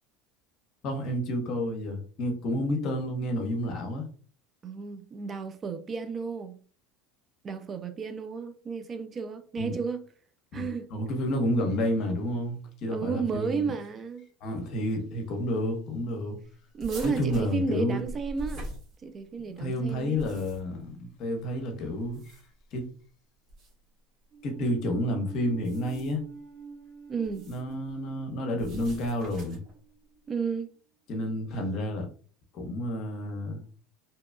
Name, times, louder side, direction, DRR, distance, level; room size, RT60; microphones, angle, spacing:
voice 1, 0.8-4.1 9.6-9.7 10.5-13.7 14.4-16.4 17.0-18.0 19.5-22.4 22.7-22.9 24.4-26.2 27.5-29.6 31.1-32.1 32.5-33.6, left 1 dB, 50° left, 0.8 m, -30 dB
voice 2, 4.6-6.6 7.4-10.0 10.5-10.9 12.9-14.3 16.7-18.7 19.0-20.2 27.1-27.5 30.3-30.7, right 5 dB, 30° right, 0.3 m, -32 dB
sound 1, 16.8-19.4 20.0-20.8 22.0-22.7 23.5-23.7 25.5-26.3 27.2-27.7 28.6-29.7, right 1 dB, 45° right, 1.1 m, -43 dB
sound 2, 24.3-30.7, right 5 dB, 80° right, 0.9 m, -48 dB
2.7 x 2.2 x 2.2 m
hypercardioid pair, 95°, 0 cm